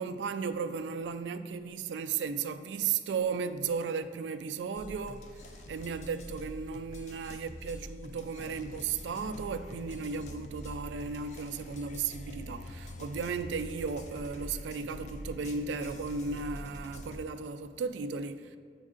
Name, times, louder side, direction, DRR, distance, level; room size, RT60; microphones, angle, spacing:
voice 1, 0.0-18.6, right 5 dB, 85° right, 0.3 m, -35 dB
sound 1, 4.7-17.2, left 1 dB, 40° left, 0.4 m, -45 dB
8.0 x 5.2 x 2.4 m
head